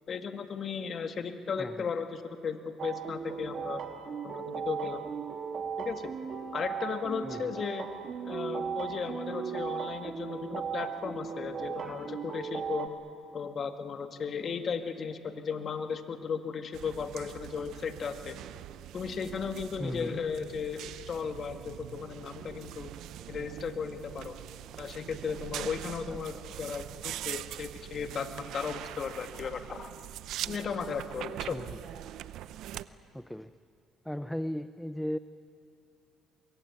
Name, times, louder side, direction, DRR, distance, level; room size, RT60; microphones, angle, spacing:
voice 1, 0.1-3.8 4.2-5.1 5.8-6.1 6.5-7.9 8.2-12.9 13.3-18.4 18.9-22.9 23.3-24.3 24.8-29.9 30.4-31.6, left 6 dB, 45° left, 7 dB, 1.7 m, -36 dB
voice 2, 1.6-1.9 7.2-7.6 11.7-12.2 19.8-20.2 26.1-26.4 31.5-31.8 33.1-33.5 34.0-35.2, equal, 5° left, 13 dB, 0.5 m, -37 dB
sound 1, 2.8-12.9, right 6 dB, 50° right, 1.8 m, -37 dB
sound 2, 16.7-32.8, right 12 dB, 75° right, 0.7 m, -43 dB
24.0 x 22.5 x 9.4 m, 2.5 s
cardioid pair, 95°, 0 cm